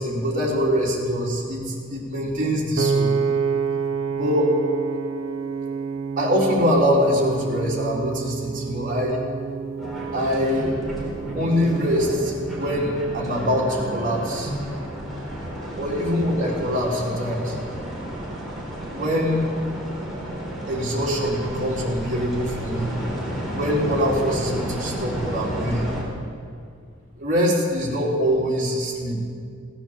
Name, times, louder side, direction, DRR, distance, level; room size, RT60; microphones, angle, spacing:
voice 1, 0.0-3.1 4.1-4.6 6.2-9.2 10.1-10.7 11.3-14.5 15.8-17.5 18.9-19.4 20.7-22.9 23.5-25.9 27.2-29.2, equal, 40° right, -4 dB, 3.3 m, -23 dB
Piano, 2.8-15.0, right 5 dB, 90° right, 0.7 m, -29 dB
sound 1, 9.8-26.0, equal, ahead, 4.3 m, -32 dB
17.0 x 10.0 x 7.2 m, 2.2 s
head